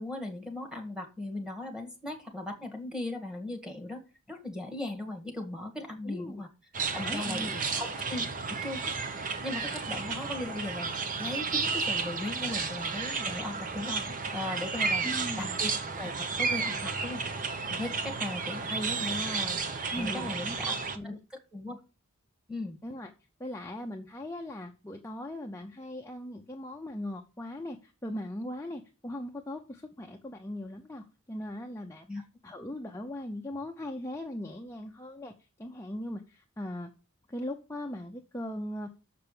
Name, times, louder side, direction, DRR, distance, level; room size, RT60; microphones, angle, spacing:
voice 1, 0.0-4.0 4.3-6.5 6.9-7.5 7.8-8.2 8.6-10.9 11.2-15.1 15.4-17.2 17.7-20.7 21.0-21.1 21.5-21.8 22.5-22.8 32.1-32.2, left 2 dB, 5° right, 3 dB, 1.7 m, -38 dB
voice 2, 6.0-6.4 7.0-7.6 15.0-15.6 19.9-21.2 22.8-23.1 23.4-32.1 32.4-35.3 35.6-36.9 37.3-39.0, left 1 dB, 10° left, 2 dB, 0.7 m, -39 dB
sound 1, 6.7-21.0, right 4 dB, 35° right, 0.9 m, -32 dB
6.8 x 5.9 x 6.8 m, 0.33 s
head